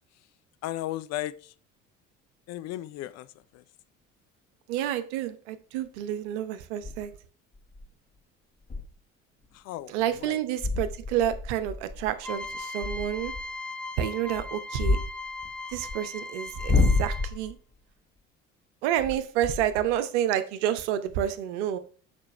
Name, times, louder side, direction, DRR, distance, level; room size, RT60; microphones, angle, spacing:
voice 1, 0.6-1.5 2.5-3.3 3.5-3.6 9.5-9.9 10.2-10.4, left 14 dB, 45° left, 15 dB, 0.5 m, -35 dB
sound 1, 3.1-3.2 6.8-7.1 7.5-7.9 8.2-8.3 8.6-9.0 9.4-9.6 10.1-10.3 10.6-13.5 14.2-16.0 16.5-17.6 19.0-20.0, left 3 dB, 25° left, 1.2 m, -29 dB
voice 2, 4.7-7.1 9.9-13.3 14.0-15.0 15.7-17.6 18.8-21.8, right 11 dB, 65° right, 11 dB, 0.8 m, -29 dB
sound 2, 12.2-17.5, left 2 dB, 5° left, 0.9 m, -38 dB
6.7 x 5.2 x 3.2 m, 0.42 s
figure-of-eight pair, 55°, 38 cm